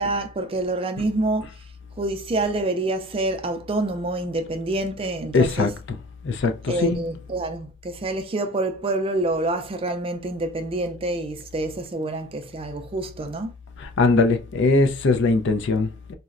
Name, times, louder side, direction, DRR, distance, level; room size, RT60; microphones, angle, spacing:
voice 1, 0.0-1.5 2.0-5.7 6.7-13.5, right 2 dB, 25° right, 0.4 m, -27 dB
voice 2, 5.3-5.7 6.2-7.0 13.8-16.1, left 3 dB, 55° left, 0.4 m, -21 dB
3.9 x 2.1 x 2.4 m
head